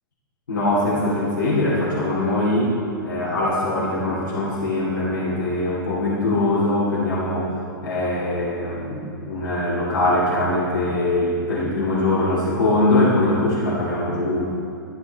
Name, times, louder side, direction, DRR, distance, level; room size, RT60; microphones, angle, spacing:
voice 1, 0.5-7.5 7.8-14.5, left 1 dB, 75° left, -10 dB, 2.7 m, -22 dB
13.0 x 9.4 x 4.3 m, 2.5 s
hypercardioid pair, 110°, 12 cm